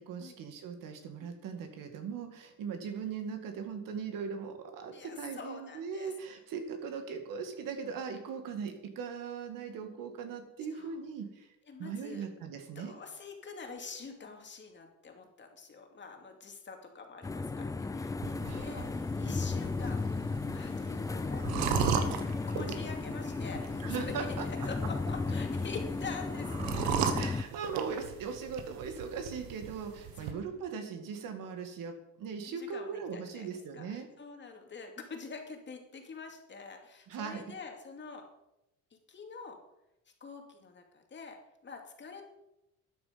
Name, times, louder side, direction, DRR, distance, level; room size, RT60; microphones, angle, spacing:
voice 1, 0.0-11.5 11.8-12.9 18.4-18.7 23.8-24.5 27.1-34.1 37.1-37.4, right 6 dB, 65° right, 6 dB, 2.2 m, -39 dB
voice 2, 4.9-6.4 10.7-11.0 11.7-12.3 12.7-20.2 20.5-24.1 24.4-27.3 30.2-30.4 32.4-33.5 33.7-38.2 38.9-39.6 40.2-41.4 41.6-42.2, left 4 dB, 30° left, 3 dB, 2.4 m, -46 dB
sound 1, 17.2-27.4, left 3 dB, 10° left, 0.3 m, -34 dB
sound 2, 18.2-30.3, right 8 dB, 85° right, 1.4 m, -37 dB
13.0 x 9.4 x 5.2 m, 0.87 s
cardioid pair, 125°, 36 cm